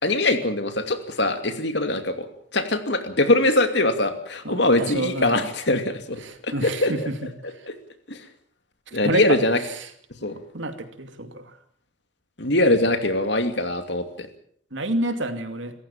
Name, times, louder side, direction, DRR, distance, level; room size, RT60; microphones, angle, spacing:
voice 1, 0.0-2.3 2.5-7.1 7.7-7.8 8.1-8.2 8.9-9.6 10.2-10.4 12.4-14.3, left 2 dB, 65° left, 8 dB, 2.6 m, -22 dB
voice 2, 4.4-5.5 6.2-7.3 8.9-9.4 9.7-9.9 10.5-11.5 14.7-15.7, right 1 dB, 75° right, 7 dB, 2.6 m, -29 dB
27.0 x 14.5 x 7.3 m, 0.63 s
head